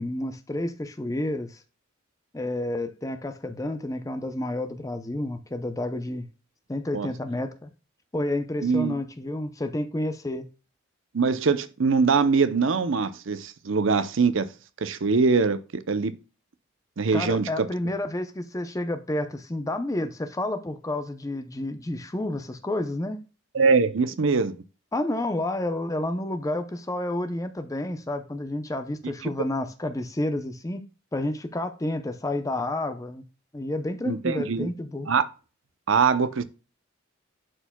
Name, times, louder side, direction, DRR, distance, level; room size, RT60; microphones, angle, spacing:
voice 1, 0.0-1.6 2.3-6.3 6.7-7.7 8.1-10.4 17.1-23.2 24.9-30.8 31.1-33.2 33.5-35.1, left 1 dB, 15° left, 0.6 m, -30 dB
voice 2, 8.6-8.9 11.1-14.5 14.8-16.1 17.0-17.7 23.5-24.5 34.1-34.7 35.1-35.2 35.9-36.4, right 4 dB, 70° right, 0.6 m, -23 dB
11.0 x 4.6 x 2.2 m
head